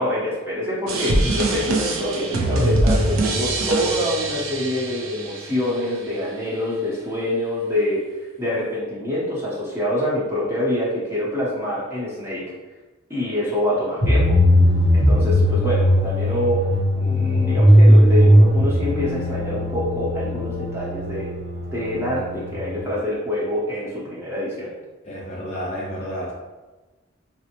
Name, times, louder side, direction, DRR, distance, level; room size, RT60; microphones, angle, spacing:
voice 1, 0.0-8.0 8.4-12.4 13.1-14.4 14.9-16.6 16.9-21.3 21.7-24.7, left 1 dB, 10° right, -7 dB, 0.8 m, -25 dB
sound 1, 0.9-5.8, right 2 dB, 90° right, 0.6 m, -23 dB
sound 2, 14.0-22.9, equal, 55° right, 0.8 m, -18 dB
voice 2, 25.1-26.3, equal, 30° left, -4 dB, 0.5 m, -30 dB
4.3 x 2.0 x 2.9 m, 1.2 s
head